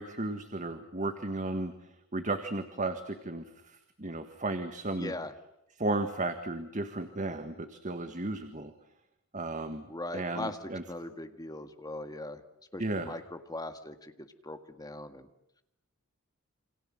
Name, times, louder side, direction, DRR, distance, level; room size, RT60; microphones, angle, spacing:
voice 1, 0.0-5.1 5.8-8.7 9.3-9.9 10.1-10.8 12.8-13.2, right 2 dB, 35° right, 8 dB, 1.6 m, -34 dB
voice 2, 4.9-5.3 9.9-10.6 10.9-12.4 12.7-15.3, left 2 dB, 15° left, 8 dB, 1.9 m, -40 dB
28.5 x 25.5 x 7.7 m, 0.81 s
head